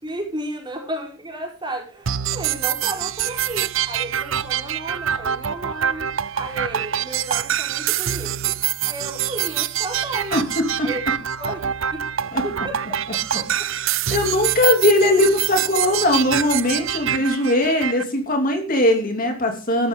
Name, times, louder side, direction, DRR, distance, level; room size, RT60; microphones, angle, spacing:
voice 1, 0.0-8.6 8.9-10.4 10.8-11.0 11.4-12.1 12.4-13.9, right 1 dB, 20° right, 4.6 m, -33 dB
sound 1, 2.0-18.0, right 10 dB, 70° right, 0.6 m, -25 dB
voice 2, 10.3-10.9 12.3-12.4 14.1-19.9, left 1 dB, 45° left, 2.9 m, -20 dB
14.5 x 12.5 x 3.8 m
head